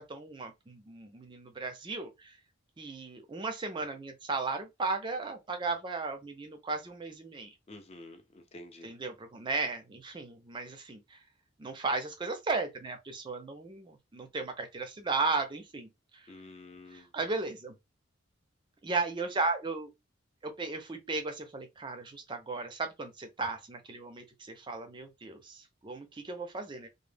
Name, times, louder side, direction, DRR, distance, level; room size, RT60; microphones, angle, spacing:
voice 1, 0.0-2.4 2.8-7.5 8.8-11.2 11.6-16.3 16.9-17.8 18.8-19.9 20.4-26.9, right 3 dB, 25° right, 0.4 m, -35 dB
voice 2, 7.7-8.9 16.3-17.1, left 2 dB, 35° left, 0.5 m, -49 dB
2.0 x 2.0 x 3.2 m
head